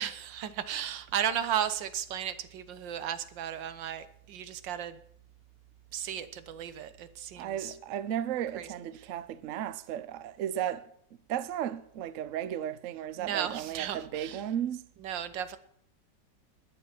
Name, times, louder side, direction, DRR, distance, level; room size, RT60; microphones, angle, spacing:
voice 1, 0.0-5.0 5.9-7.7 8.5-8.7 9.0-9.1 13.2-14.4 15.0-15.6, right 9 dB, 85° right, 1.6 m, -35 dB
voice 2, 7.4-10.9 11.3-14.9, right 10 dB, 60° right, 0.9 m, -34 dB
20.5 x 6.9 x 5.9 m
omnidirectional pair, 2.0 m